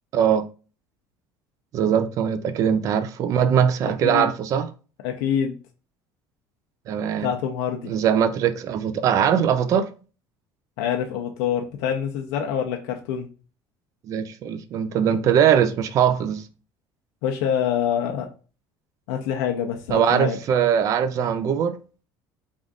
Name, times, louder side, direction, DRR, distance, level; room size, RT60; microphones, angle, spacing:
voice 1, 0.1-0.5 1.7-4.7 6.9-7.3 7.8-9.9 14.1-16.4 19.9-21.8, right 8 dB, 45° right, 0.5 m, -21 dB
voice 2, 5.0-5.5 7.2-7.9 10.8-13.3 17.2-18.3 19.1-20.4, left 8 dB, 85° left, 0.7 m, -26 dB
3.6 x 2.5 x 3.6 m
cardioid pair, 140°, 8 cm